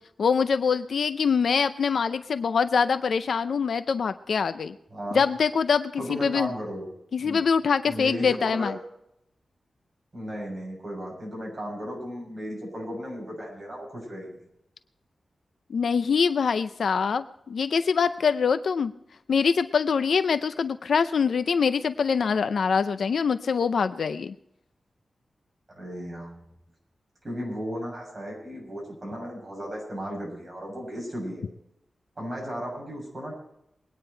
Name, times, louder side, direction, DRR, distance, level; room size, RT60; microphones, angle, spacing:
voice 1, 0.2-4.8 5.1-6.5 7.1-8.7 15.7-18.9 19.3-24.3, left 6 dB, 75° left, 11 dB, 0.5 m, -24 dB
voice 2, 4.9-5.2 6.0-6.9 7.2-7.4 7.9-8.7 10.1-14.4 25.7-26.4 27.2-31.4 32.2-33.3, equal, 30° right, -2 dB, 7.4 m, -35 dB
22.5 x 9.7 x 4.5 m, 0.79 s
wide cardioid pair, 145°, 0 cm